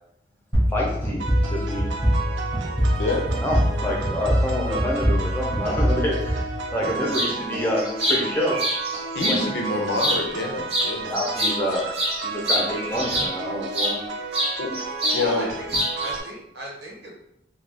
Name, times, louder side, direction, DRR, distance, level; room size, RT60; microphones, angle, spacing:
sound 1, 0.5-7.1, equal, 5° right, 0.9 m, -24 dB
voice 1, 0.7-1.9 3.0-6.4 6.7-8.6 9.3-9.5 11.0-11.9 12.2-14.0, equal, 10° left, -3 dB, 0.6 m, -27 dB
sound 2, 1.2-16.2, right 4 dB, 85° right, 0.4 m, -33 dB
voice 2, 3.0-3.3 9.1-11.1 14.6-14.7 15.1-15.5, left 2 dB, 80° left, 2 dB, 0.6 m, -26 dB
sound 3, 7.1-7.3 7.8-9.4 9.9-10.4 10.7-14.0 14.3-15.2 15.5-16.2, equal, 35° right, 0.6 m, -25 dB
voice 3, 15.1-17.1, right 1 dB, 70° right, -2 dB, 0.8 m, -36 dB
2.4 x 2.2 x 3.3 m, 0.78 s
head